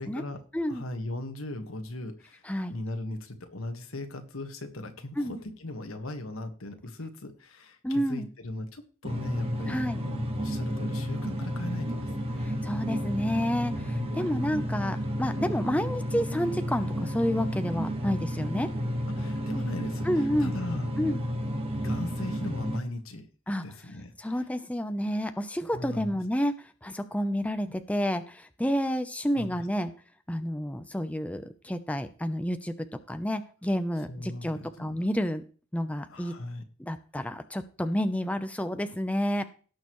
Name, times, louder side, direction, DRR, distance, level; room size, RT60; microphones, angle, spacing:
voice 1, 0.0-0.4 0.7-2.4 2.7-9.8 10.0-12.5 13.8-14.2 19.1-20.9 21.8-23.3 23.6-24.4 25.7-26.2 29.3-29.6 34.1-35.0 36.1-36.6, left 1 dB, 90° left, 6 dB, 1.6 m, -38 dB
voice 2, 7.8-8.3 9.7-10.0 12.4-18.7 20.1-20.5 21.0-21.2 23.5-23.6 24.2-26.5 26.8-29.9 30.3-32.7 33.1-35.4 35.7-36.3 36.8-39.4, equal, 5° left, 9 dB, 0.7 m, -30 dB
sound 1, 9.0-22.8, equal, 30° right, 1.6 m, -32 dB
17.0 x 6.6 x 3.1 m, 0.38 s
head